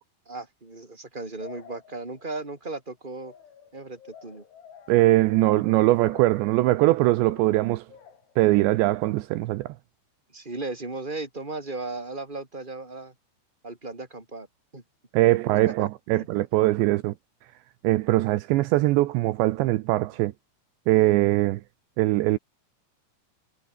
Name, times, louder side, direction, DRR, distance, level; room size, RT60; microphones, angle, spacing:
voice 1, 0.2-3.3 3.7-4.4 10.3-13.1 13.6-14.5 14.7-14.8 15.8-16.3, right 3 dB, 10° right, 4.7 m, -36 dB
sound 1, 1.4-2.4 3.2-8.4, left 8 dB, 65° left, 6.3 m, -50 dB
voice 2, 4.9-7.8 8.4-9.7 15.1-17.1 17.8-20.3 20.9-21.6 22.0-22.4, right 18 dB, 85° right, 2.6 m, -21 dB
omnidirectional pair, 6.0 m